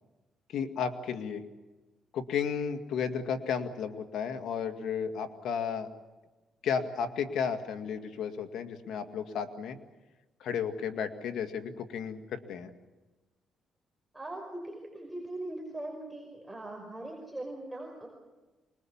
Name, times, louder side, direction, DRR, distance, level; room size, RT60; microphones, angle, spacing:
voice 1, 0.5-1.4 2.1-5.9 6.6-9.8 10.4-12.7, left 7 dB, 75° left, 7 dB, 2.1 m, -33 dB
voice 2, 14.1-18.1, right 1 dB, 10° right, 0 dB, 5.5 m, -40 dB
25.0 x 21.0 x 7.3 m, 1.2 s
cardioid pair, 90°, 0 cm